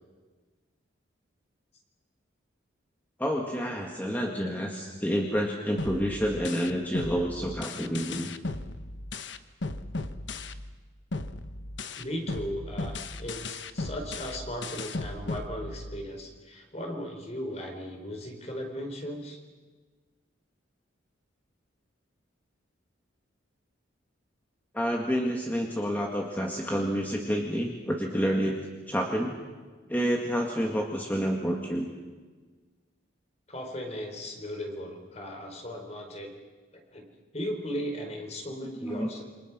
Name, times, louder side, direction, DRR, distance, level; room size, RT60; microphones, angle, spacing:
voice 1, 3.2-8.3 24.7-28.6 28.9-29.4 29.9-31.9 38.6-39.1, equal, 10° left, 0 dB, 1.9 m, -29 dB
sound 1, 5.8-10.8 11.1-16.1, left 2 dB, 70° left, 1.2 m, -36 dB
voice 2, 12.0-19.4 33.5-36.3 36.7-37.1 37.3-39.2, equal, 35° left, 3 dB, 4.4 m, -37 dB
28.5 x 25.5 x 6.2 m, 1.4 s
head